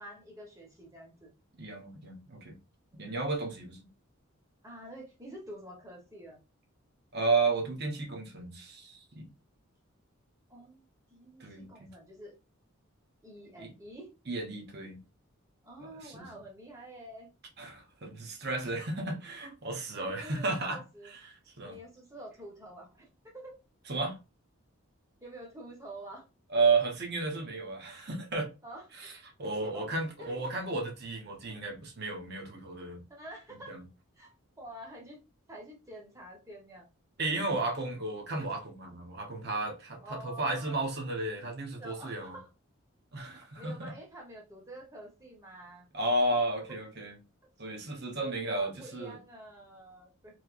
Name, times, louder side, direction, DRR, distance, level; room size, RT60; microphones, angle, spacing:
voice 1, 0.0-1.3 2.9-3.3 4.6-6.4 10.5-10.8 11.1-12.4 13.2-14.1 15.6-17.3 20.0-21.1 21.6-23.6 25.2-26.3 28.6-28.9 29.7-29.9 30.2-30.5 31.5-31.6 33.1-33.7 34.2-35.2 35.5-36.9 38.0-38.3 40.0-40.9 41.7-42.5 43.6-45.9 48.2-50.4, right 1 dB, 15° right, 1.0 m, -48 dB
voice 2, 1.6-2.6 3.0-3.8 7.1-9.3 11.4-11.9 13.6-13.7 14.3-15.0 15.8-16.4 17.6-20.8 21.1-21.2 21.6-21.8 23.9-24.2 26.5-28.5 29.0-29.1 29.4-33.0 33.7-33.8 37.2-42.4 43.1-43.9 45.9-47.1 47.6-49.2, right 3 dB, 50° right, 1.0 m, -33 dB
3.2 x 2.9 x 2.5 m
head